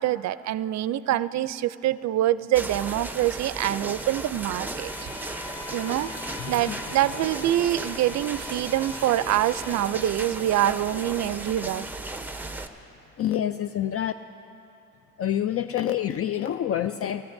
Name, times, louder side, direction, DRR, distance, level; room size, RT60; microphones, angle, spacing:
voice 1, 0.0-5.1 5.7-6.1 6.5-11.9, right 13 dB, 65° right, 15 dB, 0.5 m, -25 dB
sound 1, 2.5-12.7, right 2 dB, 5° right, 0.7 m, -35 dB
Bowed string instrument, 4.7-10.0, left 6 dB, 70° left, 0.9 m, -44 dB
voice 2, 6.4-6.8 13.2-14.1 15.2-17.2, left 10 dB, 50° left, 10 dB, 0.4 m, -27 dB
25.5 x 14.5 x 2.6 m, 2.9 s
cardioid pair, 90°, 30 cm